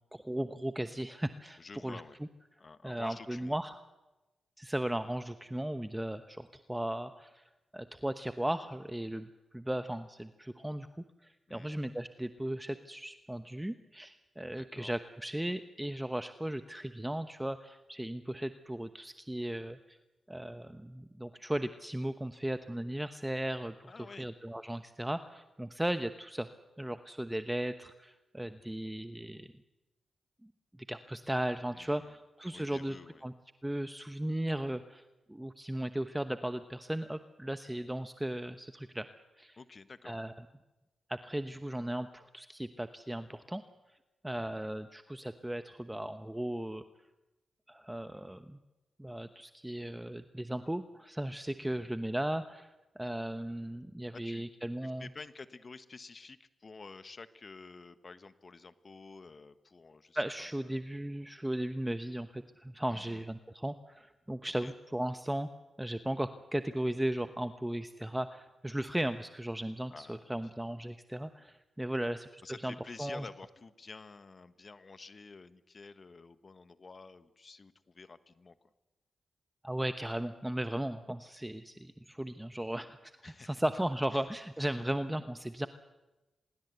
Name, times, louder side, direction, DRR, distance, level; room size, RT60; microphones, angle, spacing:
voice 1, 0.1-2.0 2.8-3.8 4.6-7.4 7.7-20.0 20.3-26.5 26.8-29.5 30.4-33.0 33.2-33.3 33.6-39.1 39.4-39.6 40.0-40.3 41.1-43.6 44.2-46.8 47.7-48.6 49.0-55.1 60.1-65.5 65.8-72.3 72.6-73.3 79.6-85.7, right 1 dB, 10° right, 10 dB, 1.0 m, -36 dB
voice 2, 1.6-2.2 2.6-3.6 11.5-11.8 14.6-14.9 23.8-24.3 31.7-32.1 32.5-33.2 39.6-40.2 44.3-44.6 51.6-52.0 54.1-54.4 54.8-60.5 62.9-63.3 64.6-64.7 69.9-70.5 72.4-78.6 83.2-83.6 84.1-84.2, left 4 dB, 45° left, 12 dB, 1.3 m, -50 dB
24.5 x 21.5 x 8.2 m, 1.1 s
supercardioid pair, 45°, 0 cm